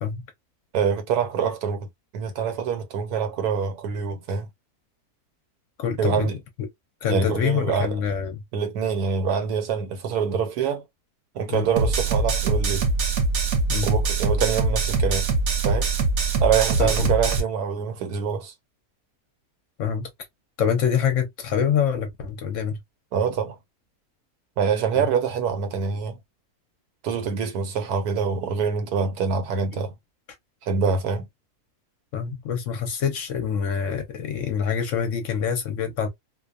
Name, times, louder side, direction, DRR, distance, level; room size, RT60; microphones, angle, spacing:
voice 1, 0.7-1.9 2.1-4.5 6.0-6.4 7.1-8.0 8.5-10.8 11.3-12.9 13.8-15.3 15.6-15.9 16.4-18.5 23.1-23.6 24.6-26.2 27.0-29.9 30.6-31.2, right 6 dB, 85° right, 1.2 m, -25 dB
voice 2, 5.8-6.3 6.6-6.7 7.0-8.4 11.5-11.7 13.7-13.9 16.8-17.1 19.8-20.1 20.6-22.8 24.9-25.1 32.1-36.1, left 7 dB, 65° left, 0.9 m, -25 dB
sound 1, 11.8-17.4, right 3 dB, 60° right, 0.9 m, -23 dB
2.5 x 2.1 x 2.3 m
omnidirectional pair, 1.6 m